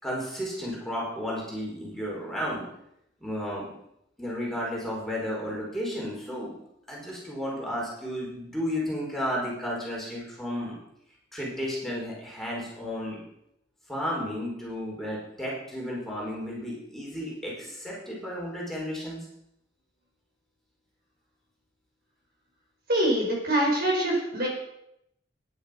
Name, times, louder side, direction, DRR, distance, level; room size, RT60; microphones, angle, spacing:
voice 1, 0.0-2.7 3.2-3.7 4.2-6.6 6.9-10.8 11.3-13.2 13.9-19.2, equal, ahead, -4 dB, 4.7 m, -33 dB
voice 2, 22.9-24.5, right 1 dB, 55° right, -1 dB, 5.1 m, -24 dB
14.5 x 10.5 x 5.3 m, 0.78 s
head